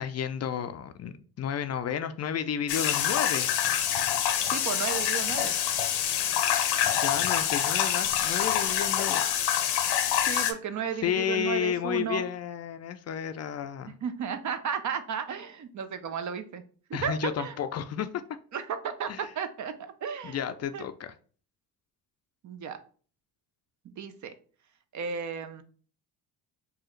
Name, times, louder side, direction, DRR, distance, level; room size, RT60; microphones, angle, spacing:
voice 1, 0.0-3.5 6.9-9.2 11.0-13.9 16.9-18.1 19.1-19.3 20.2-21.1, left 9 dB, 40° left, 10 dB, 0.4 m, -32 dB
sound 1, 2.7-10.5, left 10 dB, 80° left, 0.7 m, -26 dB
voice 2, 4.5-5.5 10.2-12.2 14.0-16.6 16.9-17.5 18.5-20.4 20.7-20.9 22.4-22.8 23.8-24.3 24.9-25.6, right 7 dB, 45° right, 10 dB, 0.6 m, -34 dB
4.6 x 2.5 x 3.1 m, 0.42 s
cardioid pair, 85°, 41 cm